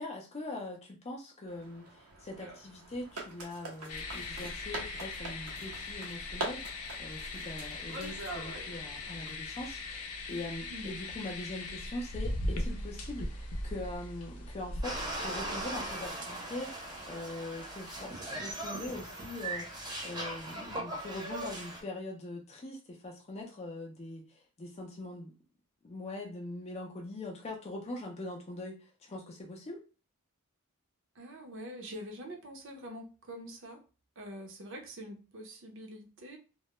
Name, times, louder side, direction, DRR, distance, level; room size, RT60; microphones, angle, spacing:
voice 1, 0.0-25.3 25.8-29.8, left 2 dB, 30° left, -1 dB, 0.4 m, -42 dB
sound 1, 1.5-9.3, right 2 dB, 90° right, 0.8 m, -44 dB
sound 2, 3.9-16.1, left 2 dB, 85° left, 0.5 m, -39 dB
sound 3, 14.8-21.8, right 1 dB, 20° right, 0.7 m, -39 dB
voice 2, 31.1-33.8 34.2-36.4, equal, 60° right, 3 dB, 0.6 m, -45 dB
2.2 x 2.1 x 2.9 m, 0.34 s
head